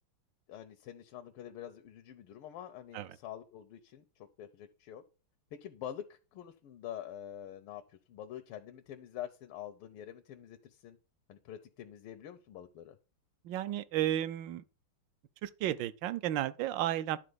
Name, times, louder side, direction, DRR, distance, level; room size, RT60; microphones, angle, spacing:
voice 1, 0.5-5.0 5.5-11.0 11.3-13.0, left 10 dB, 90° left, 1.6 m, -46 dB
voice 2, 13.4-14.6 15.4-17.2, right 13 dB, 70° right, 1.2 m, -33 dB
11.0 x 4.0 x 6.8 m
omnidirectional pair, 2.4 m